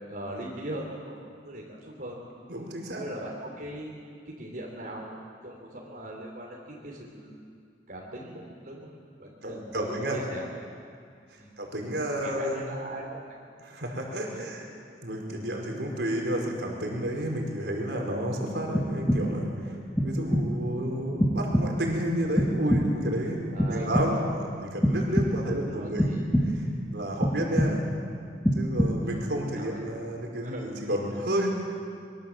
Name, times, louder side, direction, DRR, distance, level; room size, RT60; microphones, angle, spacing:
voice 1, 0.1-1.2 1.4-2.2 2.9-3.9 4.4-5.1 5.4-7.4 7.9-8.9 9.2-10.5 11.3-11.5 12.2-13.4 14.3-14.5 21.1-21.2 23.5-23.9 25.4-26.2 27.2-27.5 29.0-29.8 30.4-30.6, right 1 dB, 55° right, -3 dB, 3.6 m, -40 dB
voice 2, 2.5-3.0 9.4-10.2 11.3-12.8 13.6-14.6 15.0-19.7 20.0-26.6 26.9-27.9 28.5-31.5, equal, 70° right, 0 dB, 5.1 m, -31 dB
sound 1, 18.7-19.5 20.0-20.7 21.2-22.0 22.4-23.2 23.6-24.4 24.8-25.6 26.0-26.8 27.2-28.0 28.4-29.2, equal, 10° left, 1.8 m, -26 dB
25.5 x 23.5 x 7.6 m, 2.3 s
head